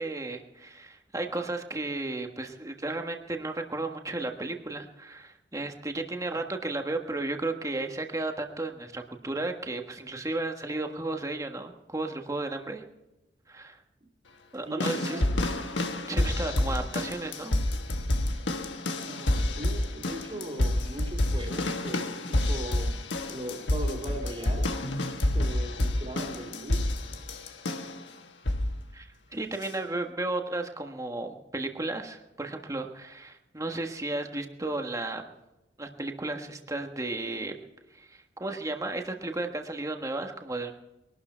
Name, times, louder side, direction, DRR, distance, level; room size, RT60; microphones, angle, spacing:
voice 1, 0.0-12.8 13.5-13.8 14.5-15.2 16.0-17.6 28.9-35.3 35.8-37.5 37.9-40.7, right 2 dB, 20° right, 4 dB, 1.5 m, -34 dB
voice 2, 14.6-15.5 16.2-16.7 18.6-23.0 23.3-24.7 25.3-26.8, right 1 dB, 35° right, -1 dB, 2.9 m, -39 dB
sound 1, 14.8-28.0 28.4-28.8 29.6-29.7, left 1 dB, 80° left, 1.4 m, -29 dB
22.0 x 12.5 x 4.5 m, 0.96 s
head